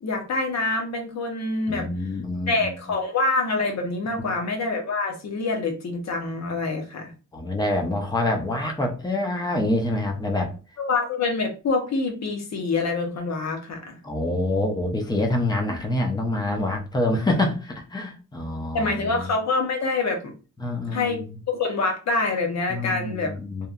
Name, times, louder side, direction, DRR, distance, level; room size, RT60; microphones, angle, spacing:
voice 1, 0.0-1.9 2.5-7.1 10.8-14.0 18.7-20.3 20.9-23.3, left 3 dB, 55° left, 3 dB, 0.7 m, -26 dB
voice 2, 1.7-2.7 4.2-4.3 7.3-10.5 14.0-19.3 20.6-21.3 22.7-23.7, left 1 dB, 15° left, 3 dB, 0.4 m, -26 dB
2.8 x 2.1 x 2.3 m, 0.33 s
wide cardioid pair, 175°, 33 cm